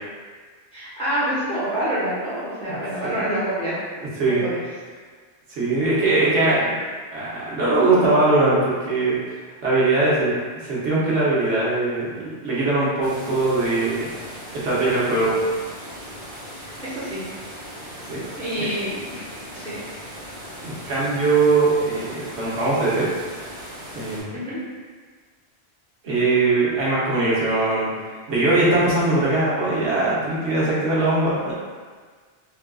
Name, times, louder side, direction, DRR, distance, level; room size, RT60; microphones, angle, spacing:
voice 1, 0.7-3.9 4.3-4.6 16.6-17.3 18.3-19.9 24.3-24.6, right 1 dB, 5° left, -10 dB, 0.8 m, -27 dB
voice 2, 5.5-6.7 7.1-9.2 9.6-10.3 10.6-14.1 14.5-15.3 18.1-18.2 18.6-18.7 20.6-23.1 23.9-24.3 26.0-27.9 28.3-31.5, right 2 dB, 85° right, -7 dB, 1.2 m, -21 dB
sound 1, 13.0-24.2, equal, 40° right, 1.2 m, -38 dB
3.7 x 2.4 x 2.2 m, 1.5 s
omnidirectional pair, 1.2 m